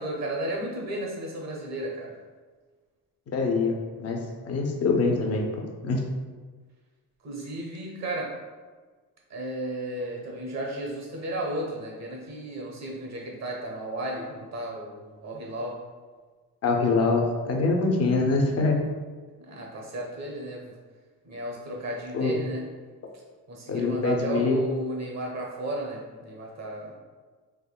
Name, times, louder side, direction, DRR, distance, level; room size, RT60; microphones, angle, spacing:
voice 1, 0.0-2.1 7.2-8.3 9.3-15.7 19.4-20.7 21.2-22.6 23.5-26.9, right 1 dB, 45° right, -1 dB, 0.7 m, -34 dB
voice 2, 3.3-5.5 5.8-6.0 16.6-18.8 22.1-22.3 23.7-24.6, left 3 dB, 45° left, 1 dB, 0.5 m, -24 dB
3.5 x 3.0 x 2.2 m, 1.4 s
wide cardioid pair, 145°, 36 cm